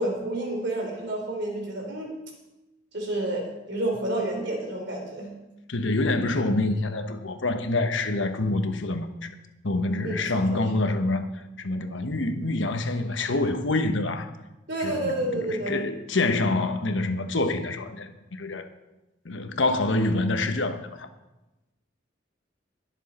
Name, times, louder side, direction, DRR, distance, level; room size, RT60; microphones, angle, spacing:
voice 1, 0.0-2.2 2.9-5.3 10.0-10.6 14.7-15.8, right 1 dB, 60° right, 3.3 m, -30 dB
voice 2, 5.7-9.3 9.6-14.3 14.8-18.7 19.2-21.1, left 2 dB, 65° left, 1.2 m, -26 dB
22.0 x 7.3 x 4.3 m
head